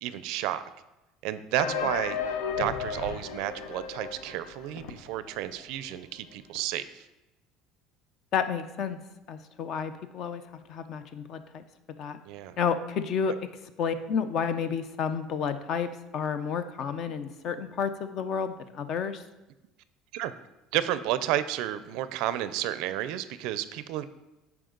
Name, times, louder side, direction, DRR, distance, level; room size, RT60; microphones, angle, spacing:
voice 1, 0.0-0.6 1.2-2.2 2.6-7.1 12.2-12.6 20.1-20.3 20.7-24.1, right 12 dB, 60° right, 13 dB, 0.4 m, -31 dB
sound 1, 1.6-5.3 5.6-5.7 5.9-6.0 6.6-6.7, left 6 dB, 90° left, 0.7 m, -34 dB
voice 2, 8.3-9.0 9.3-10.4 10.7-11.6 12.0-12.2 12.6-13.3 13.8-19.2, left 6 dB, 40° left, 11 dB, 0.5 m, -30 dB
13.0 x 4.8 x 3.8 m, 0.99 s
cardioid pair, 170°, 0 cm